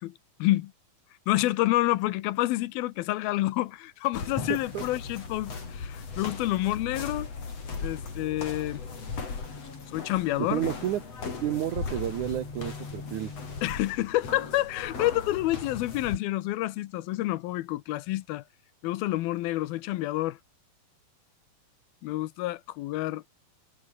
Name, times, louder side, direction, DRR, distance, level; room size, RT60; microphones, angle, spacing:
voice 1, 0.4-0.7 1.3-7.3 7.8-8.8 9.9-10.6 13.6-18.4 18.8-20.4 22.0-23.2, left 17 dB, 85° left, 2.7 m, -28 dB
sound 1, 4.1-16.2, left 4 dB, 45° left, 5.3 m, -37 dB
voice 2, 10.5-11.0 11.4-13.3, right 12 dB, 65° right, 2.1 m, -30 dB
omnidirectional pair, 4.3 m